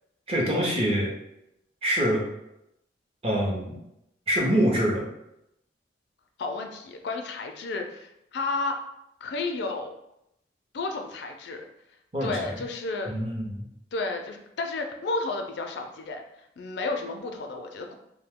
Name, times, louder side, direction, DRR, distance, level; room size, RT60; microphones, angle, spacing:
voice 1, 0.3-1.1 1.8-2.2 3.2-3.8 4.3-5.0 12.1-12.5 13.1-13.6, equal, 30° right, -2 dB, 0.6 m, -25 dB
voice 2, 6.4-8.8 9.2-9.9 10.7-11.7 12.2-13.1 13.9-16.2 16.6-17.9, left 3 dB, 65° left, 4 dB, 0.4 m, -32 dB
2.7 x 2.1 x 3.5 m, 0.82 s
head